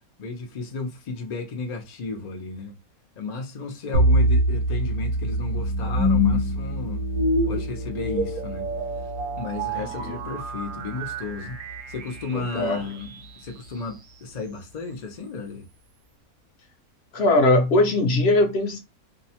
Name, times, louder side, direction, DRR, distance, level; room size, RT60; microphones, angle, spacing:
voice 1, 0.2-2.7 3.2-7.1 7.4-8.7 9.4-11.6 11.9-15.7, left 4 dB, 85° left, 0.3 m, -33 dB
sound 1, 3.9-13.0, equal, 80° right, 1.0 m, -25 dB
voice 2, 9.7-10.2 12.3-12.8 17.1-18.8, left 2 dB, 60° left, 0.7 m, -21 dB
2.7 x 2.0 x 2.7 m
omnidirectional pair, 1.5 m